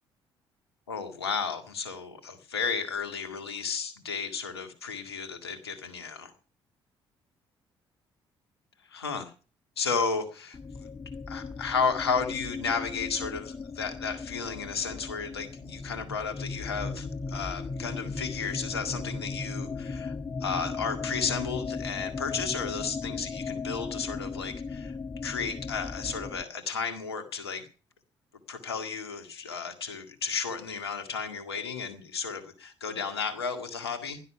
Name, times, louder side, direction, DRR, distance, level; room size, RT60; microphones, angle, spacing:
voice 1, 0.9-6.3 8.9-9.3 9.8-10.6 11.3-25.0 25.2-27.7 28.5-34.2, left 5 dB, 85° left, 9 dB, 1.9 m, -33 dB
sound 1, 10.5-26.4, left 4 dB, 25° left, 0.9 m, -37 dB
16.0 x 12.0 x 5.7 m, 0.37 s
figure-of-eight pair, 45°, 13 cm